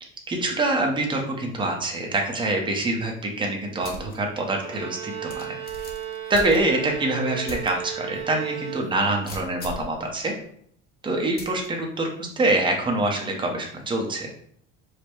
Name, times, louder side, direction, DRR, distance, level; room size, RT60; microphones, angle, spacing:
voice 1, 0.3-5.4 6.3-10.3 11.0-14.3, right 2 dB, 15° right, 1 dB, 0.8 m, -25 dB
sound 1, 3.8-4.2 4.6-4.7 5.3-7.0 7.5-7.7 8.1-8.2 9.2-9.9 11.4-11.7, left 2 dB, 30° left, 0.8 m, -38 dB
Bowed string instrument, 4.6-9.3, right 11 dB, 65° right, 0.9 m, -35 dB
4.8 x 2.2 x 4.6 m, 0.64 s
cardioid pair, 140°, 30 cm